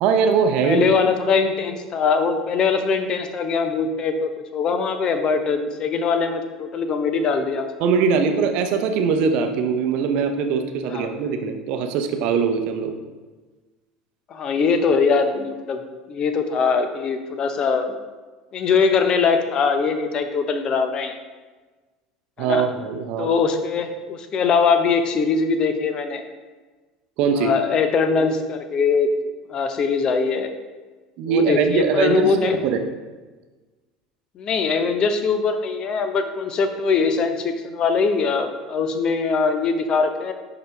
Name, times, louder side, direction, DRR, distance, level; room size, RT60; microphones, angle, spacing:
voice 1, 0.0-0.9 7.8-12.9 22.4-23.3 27.2-27.5 31.2-32.4 32.6-32.8, right 5 dB, 50° right, 6 dB, 0.7 m, -21 dB
voice 2, 0.6-7.7 10.9-11.1 14.3-17.9 18.5-21.2 22.4-22.7 23.2-26.2 27.4-29.1 29.5-30.5 31.3-32.6 34.4-40.3, left 5 dB, 35° left, 8 dB, 0.7 m, -22 dB
10.0 x 4.0 x 3.3 m, 1.3 s
figure-of-eight pair, 70°, 2 cm